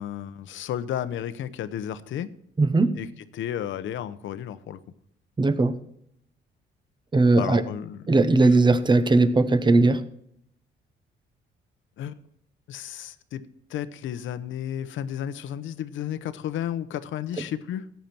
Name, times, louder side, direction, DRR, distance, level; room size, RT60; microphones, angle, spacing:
voice 1, 0.0-2.3 2.9-3.1 3.3-4.8 7.4-8.0 12.0-12.1 12.7-17.9, left 10 dB, 80° left, 13 dB, 0.9 m, -33 dB
voice 2, 2.6-2.9 5.4-5.8 7.1-7.6 8.1-10.0, right 3 dB, 25° right, 12 dB, 1.1 m, -19 dB
14.5 x 9.2 x 4.5 m, 0.72 s
cardioid pair, 90°, 20 cm